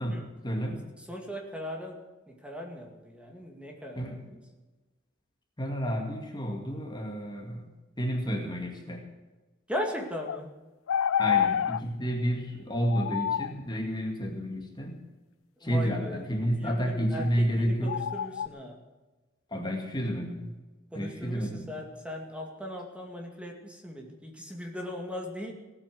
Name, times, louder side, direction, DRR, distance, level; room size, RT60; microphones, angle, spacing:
voice 1, 0.0-0.9 4.0-4.2 5.6-7.7 8.0-9.1 11.2-15.0 15.6-18.0 19.5-20.5 20.9-21.7, equal, 20° left, 2 dB, 2.0 m, -30 dB
voice 2, 1.0-2.0 2.3-4.4 9.7-10.5 15.6-18.8 20.9-25.5, equal, 5° right, 1 dB, 2.2 m, -38 dB
sound 1, 10.3-10.4 10.9-11.8 12.9-13.5 17.2-17.3 17.9-18.5, left 9 dB, 90° left, 0.4 m, -27 dB
17.5 x 8.7 x 7.8 m, 1.2 s
head